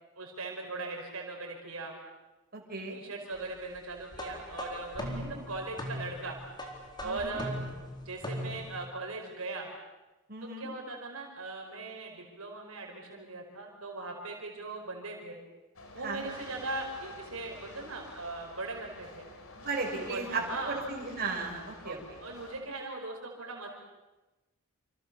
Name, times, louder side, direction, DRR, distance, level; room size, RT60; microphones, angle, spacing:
voice 1, 0.2-1.9 2.9-6.4 7.0-7.5 8.0-9.7 10.4-15.4 15.9-19.3 19.9-20.8 21.8-23.7, right 3 dB, 70° right, 1 dB, 5.1 m, -39 dB
voice 2, 2.5-3.0 5.0-5.3 7.0-7.4 10.3-10.7 16.0-16.4 19.5-22.0, right 3 dB, 45° right, 0 dB, 5.9 m, -36 dB
sound 1, 4.1-8.9, equal, 20° left, 4.2 m, -39 dB
sound 2, 15.8-22.6, left 2 dB, 70° left, 4.6 m, -49 dB
28.5 x 28.0 x 7.0 m, 1.1 s
head